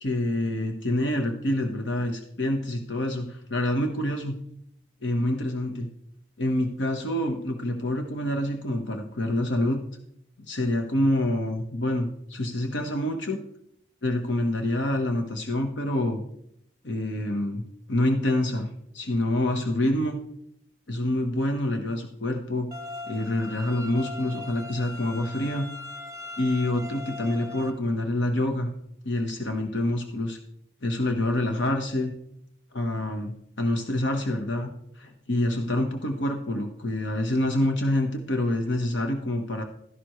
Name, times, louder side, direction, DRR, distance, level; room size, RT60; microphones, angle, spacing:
voice 1, 0.0-4.4 5.0-5.9 6.4-9.8 10.5-13.4 14.0-16.2 16.8-17.6 17.9-20.2 20.9-22.7 23.1-25.7 26.4-28.7 29.0-30.4 30.8-32.1 32.7-34.7 35.0-39.6, left 1 dB, 70° left, 4 dB, 1.1 m, -27 dB
sound 1, 22.7-27.7, left 2 dB, 20° right, 1.0 m, -40 dB
12.5 x 11.0 x 3.1 m, 0.74 s
head